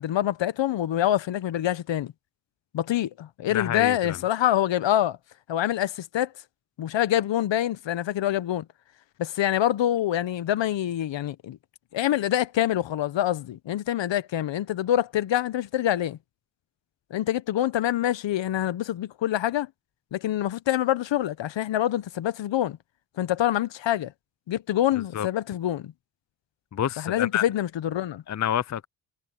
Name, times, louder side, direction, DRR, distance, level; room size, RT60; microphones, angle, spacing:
voice 1, 0.0-2.1 2.7-5.2 5.5-6.3 6.8-8.6 9.2-11.6 11.9-16.2 17.1-19.7 20.1-22.8 23.2-24.1 24.5-25.9 27.0-28.2, left 12 dB, 65° left, 1.3 m, -26 dB
voice 2, 3.5-4.2 25.1-25.3 26.7-27.4 28.3-28.8, left 10 dB, 35° left, 0.7 m, -28 dB
supercardioid pair, 50°, 47 cm